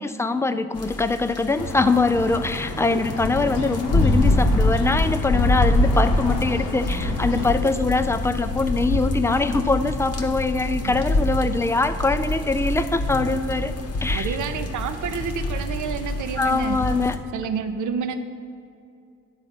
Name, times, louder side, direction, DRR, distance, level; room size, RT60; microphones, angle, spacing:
voice 1, 0.0-13.7 14.0-14.4 16.4-17.2, left 3 dB, 10° left, 11 dB, 0.4 m, -23 dB
sound 1, 0.7-17.2, left 2 dB, 45° left, 0.9 m, -25 dB
sound 2, 1.6-7.6, left 1 dB, 90° left, 0.8 m, -33 dB
voice 2, 14.1-16.8 17.3-18.2, right 6 dB, 55° right, 9 dB, 0.7 m, -29 dB
9.8 x 3.9 x 5.9 m, 2.4 s
hypercardioid pair, 45°, 36 cm